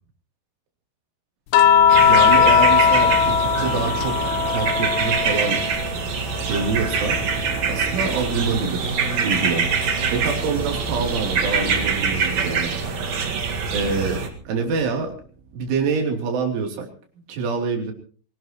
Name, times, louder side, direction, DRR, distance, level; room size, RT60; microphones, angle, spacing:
sound 1, 1.5-6.0 6.4-8.0 9.5-9.7, left 8 dB, 85° left, 3.6 m, -19 dB
sound 2, 1.8-16.0, right 5 dB, 85° right, 4.7 m, -36 dB
sound 3, 1.9-14.3, right 5 dB, 55° right, 2.0 m, -25 dB
voice 1, 2.0-4.2 4.5-5.7 6.5-7.2 7.7-9.7 10.1-12.7 13.7-14.2 14.5-15.2 15.5-16.9 17.3-17.9, right 5 dB, 70° right, 2 dB, 5.6 m, -26 dB
24.5 x 18.5 x 3.0 m, 0.41 s
omnidirectional pair, 5.8 m